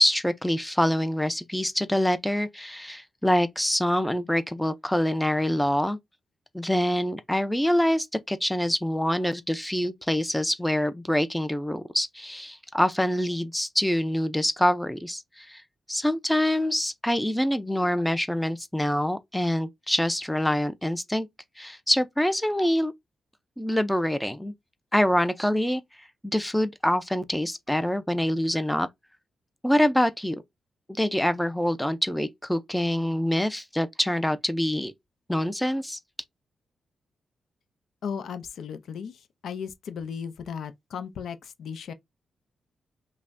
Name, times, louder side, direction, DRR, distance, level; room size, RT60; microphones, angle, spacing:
voice 1, 0.0-6.0 6.5-15.6 15.9-21.3 21.6-22.9 23.6-24.5 24.9-25.8 26.2-28.9 29.6-30.4 31.0-34.9 35.3-36.0, left 1 dB, 5° left, 0.4 m, -25 dB
voice 2, 38.0-41.9, left 7 dB, 75° left, 0.5 m, -36 dB
5.5 x 2.1 x 2.5 m
cardioid pair, 90°, 0 cm